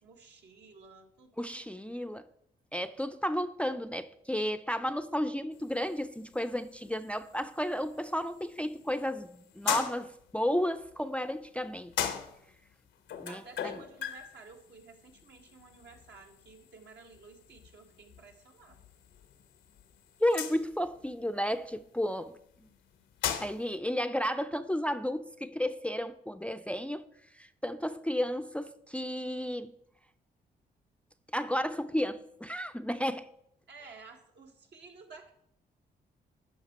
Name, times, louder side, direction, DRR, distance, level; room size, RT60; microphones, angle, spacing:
voice 1, 0.0-1.9 13.3-18.9 33.7-35.3, right 4 dB, 70° right, 1.4 m, -53 dB
voice 2, 1.4-2.2 2.7-12.2 13.2-13.8 20.2-22.3 23.4-27.0 27.3-29.7 31.3-33.3, equal, 5° left, 0.4 m, -33 dB
sound 1, 5.5-23.8, left 8 dB, 85° left, 0.8 m, -41 dB
11.0 x 5.8 x 4.2 m
supercardioid pair, 55°, 19 cm